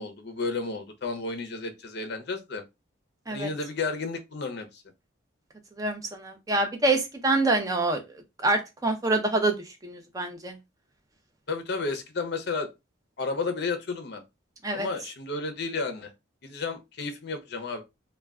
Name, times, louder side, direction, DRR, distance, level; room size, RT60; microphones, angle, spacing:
voice 1, 0.0-2.6 3.3-4.8 11.5-12.7 13.2-14.2 14.7-16.1 16.4-17.8, left 3 dB, 55° left, 0.5 m, -32 dB
voice 2, 5.8-8.0 8.4-9.6 9.8-10.6 14.6-14.9, right 2 dB, 15° right, 0.5 m, -26 dB
2.2 x 2.1 x 3.5 m
head